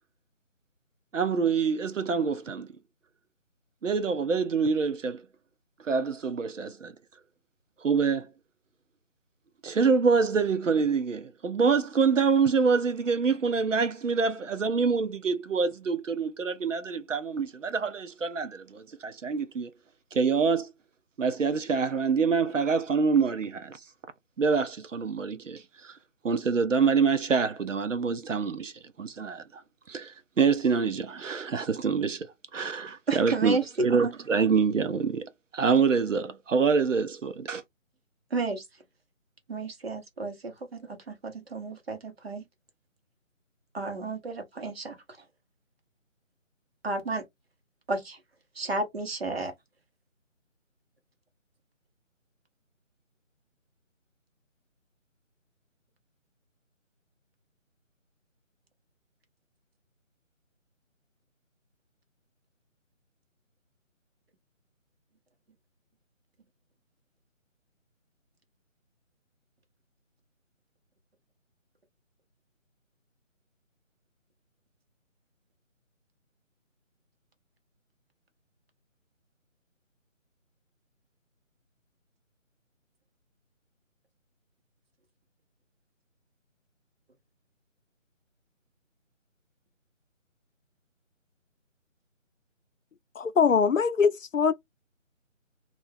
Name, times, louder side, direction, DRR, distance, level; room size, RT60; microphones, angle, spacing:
voice 1, 1.1-2.7 3.8-5.2 5.8-6.9 7.8-8.3 9.6-19.7 20.1-20.7 21.2-23.8 24.4-25.9 26.2-28.7 29.0-29.6 29.9-32.3 32.5-37.6, right 5 dB, 70° right, 0.6 m, -26 dB
voice 2, 33.1-33.6 33.9-34.1 38.3-38.6 39.5-42.4 43.7-45.0 46.8-47.2 47.9-48.2 48.6-49.5, right 3 dB, 50° right, 1.1 m, -32 dB
voice 3, 93.2-94.5, left 6 dB, 75° left, 0.6 m, -22 dB
2.5 x 2.3 x 3.5 m
figure-of-eight pair, 160°, 40 cm